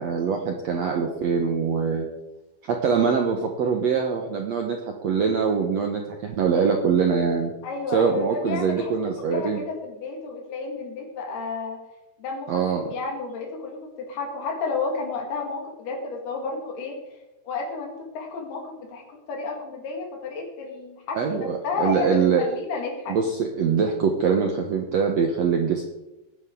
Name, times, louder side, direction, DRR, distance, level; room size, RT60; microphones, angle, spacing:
voice 1, 0.0-2.1 2.6-7.5 7.9-9.6 12.5-12.8 21.1-22.4 23.1-25.8, right 6 dB, 70° right, 2 dB, 1.6 m, -23 dB
voice 2, 7.6-8.9 9.3-11.8 12.2-17.0 17.5-19.0 19.3-23.2, left 4 dB, 80° left, 1 dB, 4.1 m, -31 dB
19.0 x 10.0 x 3.8 m, 0.98 s
omnidirectional pair, 4.5 m